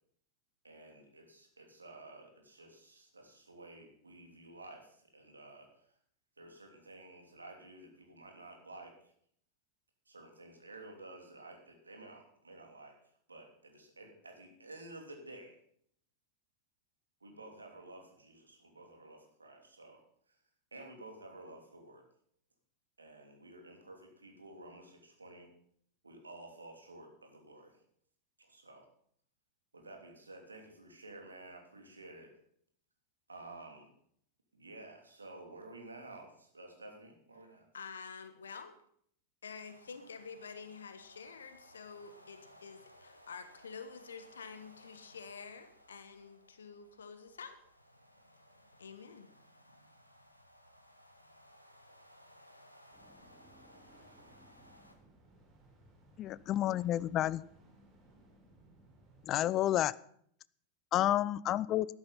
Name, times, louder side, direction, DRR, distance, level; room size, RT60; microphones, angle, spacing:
voice 1, 0.6-5.7 6.4-8.9 10.1-13.0 13.3-15.6 17.2-20.0 20.3-20.4 20.7-22.0 23.0-25.5 26.0-27.8 28.5-28.9 29.7-32.3 33.3-33.9 34.5-37.6, right 2 dB, 80° right, 2 dB, 3.0 m, -52 dB
voice 2, 37.7-38.8 39.4-47.6 48.8-49.3, left 5 dB, 70° left, 10 dB, 1.3 m, -48 dB
sound 1, 39.5-54.9, equal, 90° left, 1.5 m, -61 dB
sound 2, 52.9-59.5, right 1 dB, 35° right, 3.8 m, -62 dB
voice 3, 56.2-57.4 59.3-59.9 60.9-61.9, left 13 dB, 35° left, 21 dB, 0.4 m, -30 dB
13.0 x 11.0 x 5.8 m, 0.65 s
figure-of-eight pair, 90°, 0 cm